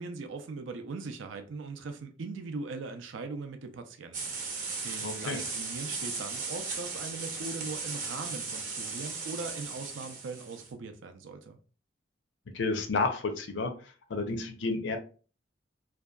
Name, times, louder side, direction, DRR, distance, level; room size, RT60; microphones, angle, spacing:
voice 1, 0.0-11.6, right 4 dB, 85° right, 0.4 m, -40 dB
sound 1, 4.1-10.7, right 4 dB, 45° right, 0.7 m, -37 dB
voice 2, 5.0-5.4 12.5-13.7 14.1-15.0, left 3 dB, 70° left, 0.5 m, -30 dB
2.6 x 2.2 x 2.2 m
head